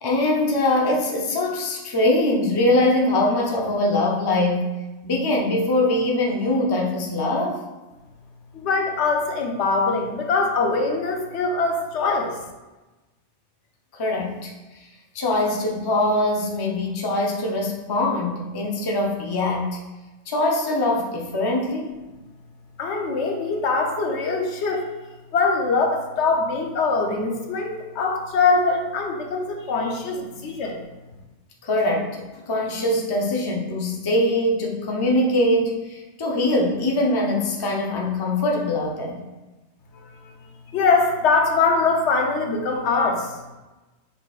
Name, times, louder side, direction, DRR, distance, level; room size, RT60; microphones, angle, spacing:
voice 1, 0.0-4.7 5.0-7.6 14.0-14.5 15.1-19.8 20.3-21.9 31.6-32.2 32.5-39.2, left 1 dB, 30° left, -1 dB, 0.5 m, -22 dB
voice 2, 8.5-12.4 22.8-24.9 25.3-30.8 39.9-40.4 40.7-43.4, left 4 dB, 80° left, 2 dB, 1.0 m, -23 dB
5.1 x 4.0 x 2.4 m, 1.1 s
omnidirectional pair, 1.2 m